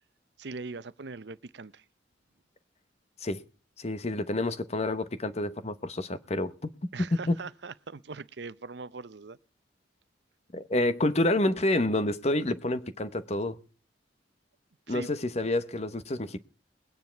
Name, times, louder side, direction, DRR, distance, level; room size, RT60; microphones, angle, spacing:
voice 1, 0.4-1.8 6.9-9.4 14.9-15.1, right 4 dB, 65° right, 0.7 m, -41 dB
voice 2, 3.8-6.7 7.0-7.4 10.5-13.6 14.9-16.4, left 1 dB, 35° left, 0.9 m, -28 dB
20.5 x 9.6 x 4.5 m
head